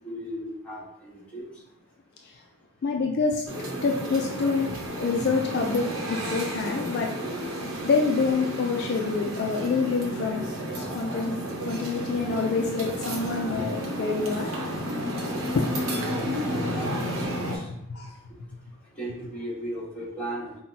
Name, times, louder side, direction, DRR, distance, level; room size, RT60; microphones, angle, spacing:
voice 1, 0.0-1.4 13.5-13.6 16.7-17.7 18.9-20.6, right 1 dB, 5° left, -8 dB, 1.4 m, -36 dB
voice 2, 2.8-3.4 3.8-7.1 7.8-10.5 10.8-11.4 11.7-13.7 14.0-14.5 15.6-15.7 17.9-18.1, left 4 dB, 50° left, 1 dB, 0.3 m, -26 dB
sound 1, 3.5-17.6, equal, 65° right, 0.9 m, -31 dB
5.5 x 2.2 x 2.7 m, 0.81 s
head